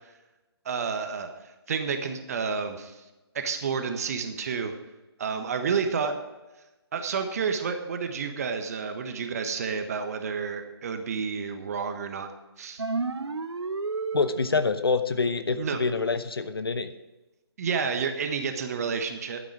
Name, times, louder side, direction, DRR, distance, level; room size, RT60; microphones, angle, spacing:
voice 1, 0.6-1.3 1.7-2.9 3.3-4.7 5.2-6.1 6.9-12.3 12.6-12.8 15.6-15.8 17.6-19.4, right 5 dB, 35° right, 6 dB, 1.4 m, -30 dB
sound 1, 12.8-14.8, right 4 dB, 80° right, 0.7 m, -31 dB
voice 2, 14.1-16.9, left 4 dB, 65° left, 10 dB, 1.0 m, -26 dB
12.5 x 9.0 x 4.8 m, 1.1 s
figure-of-eight pair, 145°, 14 cm